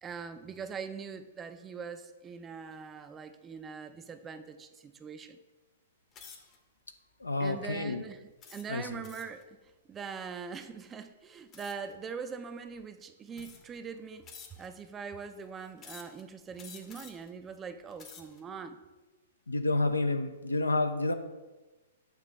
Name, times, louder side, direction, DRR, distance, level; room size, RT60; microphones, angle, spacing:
voice 1, 0.0-5.4 7.4-8.2 8.5-9.6 9.9-14.2 14.6-18.8, right 6 dB, 20° right, 9 dB, 0.4 m, -42 dB
sound 1, 6.1-6.6 7.2-7.5 8.4-9.4 11.5-11.9 12.8-12.9 13.3-13.8 14.3-14.8 15.8-16.2 16.6-17.3 17.8-18.4, left 6 dB, 25° left, 0.8 m, -51 dB
voice 2, 7.2-8.0 8.7-9.0 19.5-21.1, left 2 dB, 80° left, 8 dB, 0.5 m, -29 dB
6.8 x 3.0 x 5.4 m, 1.2 s
figure-of-eight pair, 110°, 0 cm